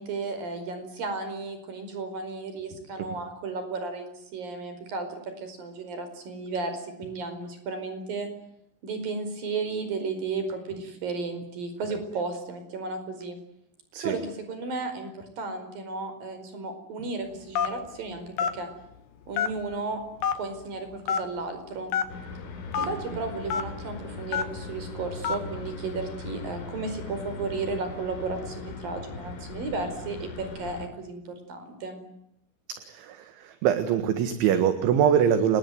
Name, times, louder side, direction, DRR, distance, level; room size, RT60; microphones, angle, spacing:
voice 1, 0.0-8.3 8.8-13.4 14.0-18.7 19.3-20.0 20.3-22.0 22.8-32.0, right 3 dB, 45° right, 9 dB, 6.4 m, -34 dB
Telephone, 17.6-17.9 18.4-18.6 19.3-19.7 20.2-20.3 21.1-21.2 21.9-22.1 22.7-22.9 23.5-23.6 24.3-24.6 25.2-25.4, left 7 dB, 60° left, 3.4 m, -25 dB
sound 1, 22.1-30.9, left 3 dB, 80° left, 6.2 m, -39 dB
voice 2, 32.8-35.6, right 9 dB, 70° right, 10 dB, 3.9 m, -23 dB
29.5 x 21.0 x 9.4 m, 0.78 s
omnidirectional pair, 5.8 m